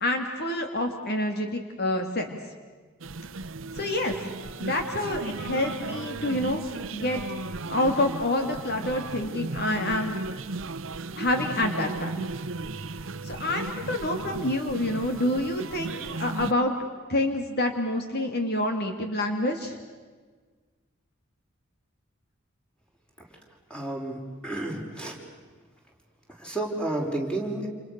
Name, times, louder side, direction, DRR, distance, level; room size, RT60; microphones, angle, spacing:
voice 1, 0.0-2.4 3.7-4.1 4.6-6.6 6.9-7.2 7.7-10.1 11.2-12.2 13.2-16.7 17.1-19.8, left 1 dB, 50° left, 5 dB, 2.6 m, -27 dB
sound 1, 3.0-16.5, right 3 dB, 70° right, 0.9 m, -35 dB
voice 2, 23.7-25.2 26.4-27.7, right 2 dB, 5° left, 0 dB, 5.6 m, -31 dB
29.5 x 29.5 x 6.9 m, 1.5 s
head